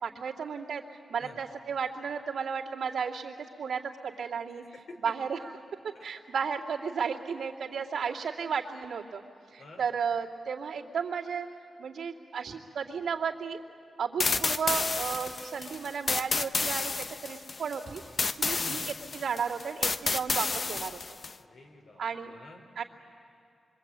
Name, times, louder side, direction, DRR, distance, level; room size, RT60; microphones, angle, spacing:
voice 1, 0.0-4.6 5.0-5.4 6.0-9.2 9.5-11.5 11.8-13.6 14.0-18.0 18.4-18.8 19.1-21.0 22.0-22.3 22.8-22.9, right 6 dB, 85° right, -4 dB, 2.6 m, -33 dB
voice 2, 4.6-5.1 5.9-6.0 9.6-9.9 18.6-18.9 21.4-22.6, left 2 dB, 70° left, 2 dB, 4.2 m, -49 dB
sound 1, 14.2-21.3, left 4 dB, 45° left, 0.7 m, -30 dB
sound 2, 14.3-16.0 17.8-18.9, right 3 dB, 40° right, 1.8 m, -51 dB
25.5 x 24.5 x 8.9 m, 2.6 s
wide cardioid pair, 100°, 0 cm